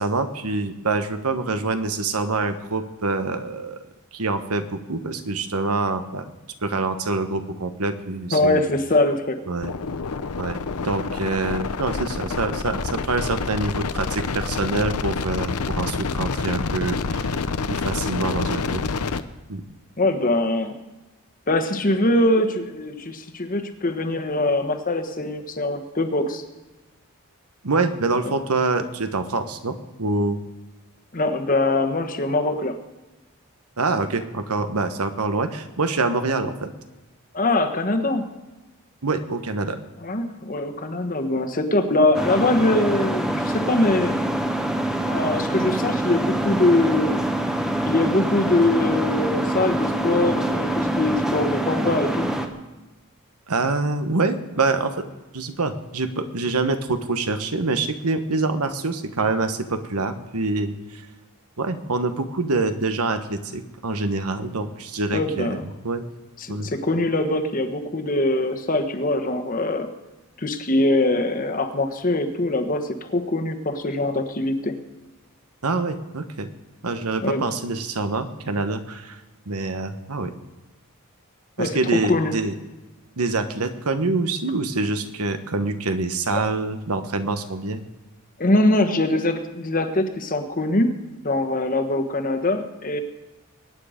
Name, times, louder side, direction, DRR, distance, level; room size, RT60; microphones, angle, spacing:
voice 1, 0.0-3.8 4.1-6.3 6.6-8.6 9.5-9.7 10.4-17.4 17.7-18.8 19.5-19.6 27.6-30.4 33.8-36.7 39.0-39.8 53.5-55.0 55.3-61.0 61.6-65.6 65.8-66.0 66.5-66.7 75.6-76.5 76.8-79.2 79.5-80.3 81.6-82.5 83.2-87.8, right 3 dB, 85° right, 9 dB, 1.2 m, -25 dB
voice 2, 8.3-9.4 20.0-20.7 21.5-26.4 31.1-32.8 37.3-38.3 40.0-44.2 45.0-47.2 47.8-52.3 65.1-65.6 66.4-69.9 70.4-74.8 77.2-77.4 81.6-82.3 86.3-86.4 88.4-90.9 91.2-93.0, left 2 dB, 40° left, 6 dB, 1.3 m, -22 dB
sound 1, 9.6-19.2, left 4 dB, 90° left, 0.8 m, -27 dB
sound 2, 42.1-52.5, right 1 dB, 5° right, 1.0 m, -25 dB
22.5 x 9.6 x 5.1 m, 1.1 s
head